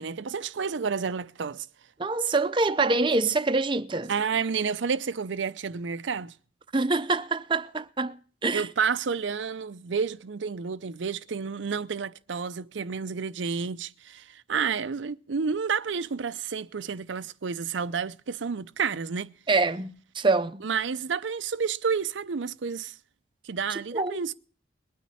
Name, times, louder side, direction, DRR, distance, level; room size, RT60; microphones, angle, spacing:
voice 1, 0.0-1.7 4.1-6.3 8.5-19.3 20.6-22.9 23.4-24.3, right 6 dB, 80° right, 0.6 m, -30 dB
voice 2, 2.0-4.1 6.7-8.1 8.4-8.7 19.5-20.6 23.7-24.2, right 3 dB, 25° right, 0.7 m, -25 dB
21.0 x 9.3 x 4.2 m
head